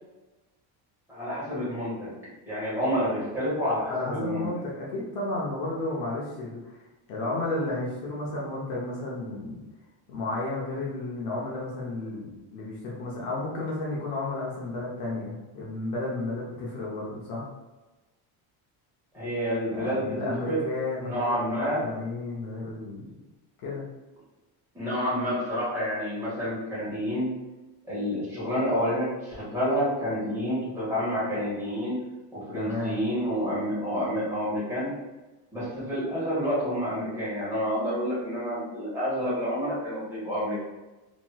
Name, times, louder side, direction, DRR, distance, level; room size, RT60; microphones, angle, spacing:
voice 1, 1.1-2.1 2.5-4.5 19.1-20.6 21.0-21.9 24.7-27.4 27.9-32.0 32.3-34.9 35.5-40.6, equal, 5° right, -11 dB, 1.5 m, -29 dB
voice 2, 3.9-6.8 7.1-9.6 10.1-17.5 19.7-23.2 23.6-23.9 32.5-33.0, left 2 dB, 55° left, -5 dB, 0.8 m, -32 dB
2.9 x 2.8 x 2.2 m, 1.1 s
cardioid pair, 165°, 40 cm